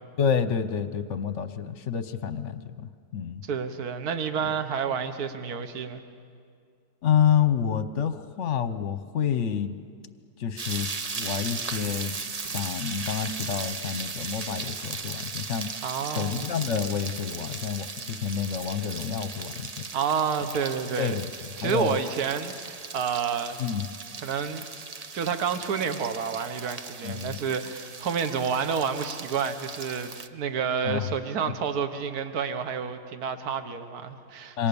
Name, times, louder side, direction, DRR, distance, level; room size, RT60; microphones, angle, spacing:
voice 1, 0.2-3.4 7.0-9.8 10.4-15.7 16.1-19.7 21.0-21.3 21.6-22.0 23.6-23.9 27.0-27.4 30.8-31.1 34.6-34.7, left 8 dB, 50° left, 11 dB, 1.0 m, -28 dB
voice 2, 3.4-6.0 15.8-16.5 19.9-21.2 21.6-23.6 24.2-24.6 25.1-34.7, right 6 dB, 55° right, 9 dB, 1.7 m, -29 dB
sound 1, 10.6-30.3, right 4 dB, 70° right, 0.3 m, -37 dB
27.0 x 25.5 x 7.1 m, 2.2 s
omnidirectional pair, 2.0 m